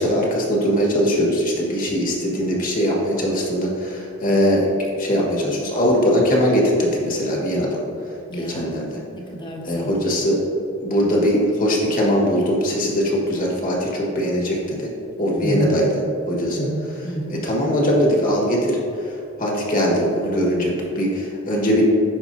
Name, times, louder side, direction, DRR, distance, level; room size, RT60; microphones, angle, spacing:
voice 1, 0.0-4.7 5.0-7.8 8.5-8.9 9.6-10.4 10.8-14.9 15.2-16.0 16.3-16.7 17.4-18.8 19.0-19.1 19.4-21.8, equal, 45° left, -2 dB, 1.4 m, -21 dB
voice 2, 8.3-8.7 9.1-9.9 15.3-15.8 16.5-17.4, right 1 dB, 25° left, -1 dB, 0.9 m, -28 dB
11.0 x 4.4 x 2.7 m, 2.6 s
head